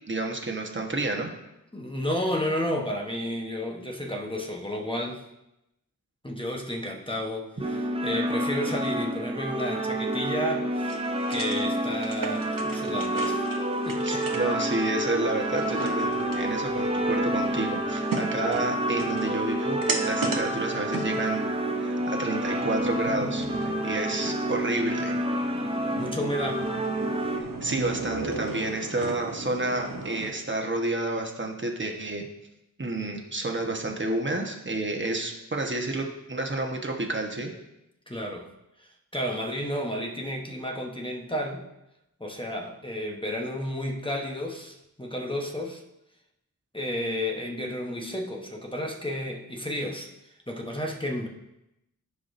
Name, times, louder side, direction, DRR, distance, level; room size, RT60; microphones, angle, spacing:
voice 1, 0.1-1.3 14.0-21.4 21.8-25.2 27.4-32.2 32.8-37.5, right 2 dB, 35° right, 2 dB, 1.2 m, -30 dB
voice 2, 1.7-5.3 6.2-11.0 11.3-13.5 13.8-14.3 26.0-26.7 38.1-38.5 38.8-41.7 42.2-45.8 46.7-50.1 50.5-51.3, equal, 15° left, 0 dB, 1.0 m, -32 dB
sound 1, 7.6-27.4, right 1 dB, 15° right, 0.6 m, -29 dB
sound 2, 10.8-30.3, right 3 dB, 70° right, 0.9 m, -37 dB
14.0 x 4.9 x 2.6 m, 0.89 s
wide cardioid pair, 50°, 34 cm